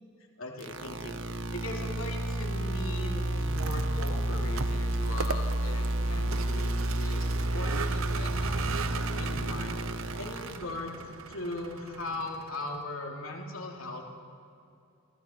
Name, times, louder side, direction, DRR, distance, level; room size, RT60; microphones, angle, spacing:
voice 1, 0.4-1.1 1.5-9.8 10.2-11.0 11.3-14.0, left 2 dB, 75° left, 1 dB, 3.0 m, -39 dB
sound 1, 0.6-10.6, right 1 dB, 65° right, 1.4 m, -31 dB
Vehicle, 3.4-12.8, right 5 dB, 80° right, 0.9 m, -39 dB
29.0 x 24.5 x 4.6 m, 2.5 s
head